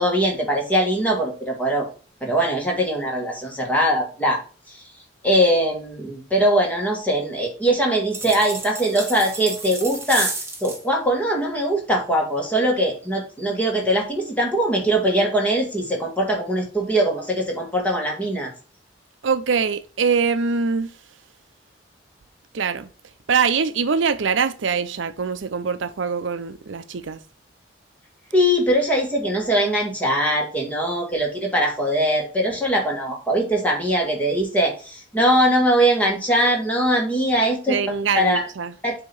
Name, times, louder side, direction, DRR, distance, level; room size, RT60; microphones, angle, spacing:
voice 1, 0.0-1.9 2.2-4.4 4.7-4.8 5.2-10.3 10.6-18.5 28.3-37.8 38.1-38.4 38.8-38.9, right 1 dB, 10° left, 1.6 m, -21 dB
sound 1, 8.1-10.8, right 3 dB, 15° right, 1.2 m, -31 dB
voice 2, 19.2-20.9 22.5-22.9 23.3-27.2 37.7-38.7, right 5 dB, 80° right, 0.5 m, -23 dB
7.7 x 2.9 x 5.3 m
head